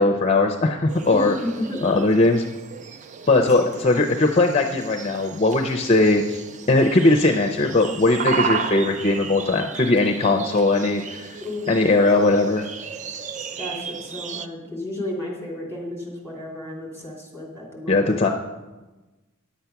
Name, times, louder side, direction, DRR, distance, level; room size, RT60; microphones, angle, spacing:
voice 1, 0.0-1.3 1.8-2.4 3.3-6.4 6.7-11.3 11.7-12.7 17.9-18.3, left 2 dB, 25° left, 4 dB, 0.5 m, -19 dB
sound 1, 0.9-14.5, right 6 dB, 35° right, 0.4 m, -34 dB
voice 2, 1.1-2.0 3.4-4.0 11.4-11.9 13.6-18.2, left 1 dB, 10° right, -2 dB, 2.8 m, -32 dB
10.0 x 8.0 x 5.8 m, 1.1 s
head